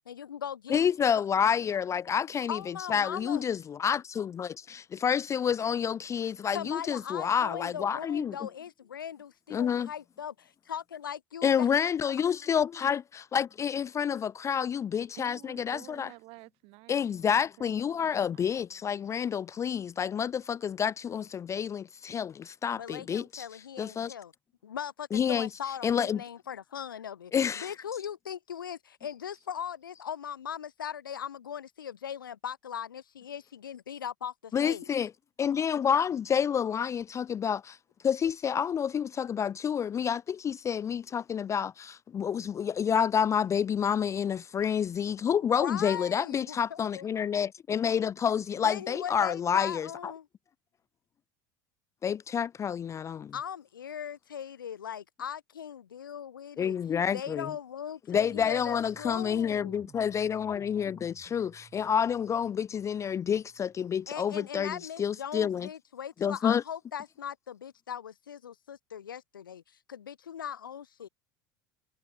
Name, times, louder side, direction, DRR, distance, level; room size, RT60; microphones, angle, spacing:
voice 1, 0.1-0.8 1.1-1.2 2.5-3.4 6.5-11.7 22.7-24.3 24.6-34.9 45.4-47.0 48.6-50.3 53.3-56.8 57.1-59.8 64.1-69.6 69.9-71.1, left 8 dB, 85° left, 0.6 m, -39 dB
voice 2, 0.7-8.4 9.5-9.9 11.4-16.1 16.9-23.5 23.8-24.1 25.1-25.5 25.8-26.2 27.3-27.7 34.5-35.1 35.4-37.8 38.0-50.1 52.0-53.3 56.6-57.5 58.1-65.7 66.2-66.6, left 8 dB, 25° left, 0.4 m, -29 dB
voice 3, 15.0-18.6 19.0-19.1, right 26 dB, 60° right, 7.5 m, -52 dB
sound 1, 58.1-64.1, right 7 dB, 30° right, 4.8 m, -57 dB
figure-of-eight pair, 70°, 11 cm